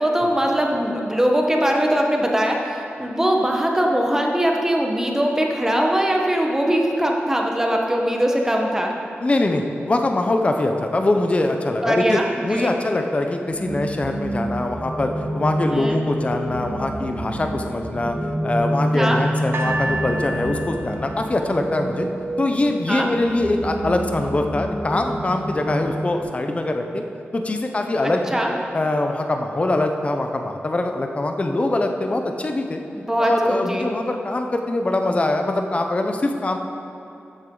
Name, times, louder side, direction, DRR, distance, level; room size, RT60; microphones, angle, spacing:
voice 1, 0.0-8.9 11.8-12.8 15.7-16.0 18.9-19.2 22.9-23.1 28.0-28.5 32.9-33.9, equal, 10° right, 0 dB, 1.1 m, -21 dB
voice 2, 9.2-18.2 18.4-22.1 22.4-27.0 27.3-28.4 28.7-32.8 33.2-36.6, left 2 dB, 30° left, 4 dB, 0.7 m, -23 dB
sound 1, 13.5-26.2, right 1 dB, 35° right, 1.3 m, -28 dB
sound 2, 19.5-22.7 23.5-23.6, right 2 dB, 65° right, 0.9 m, -31 dB
13.0 x 7.6 x 3.9 m, 2.8 s
wide cardioid pair, 110°, 4 cm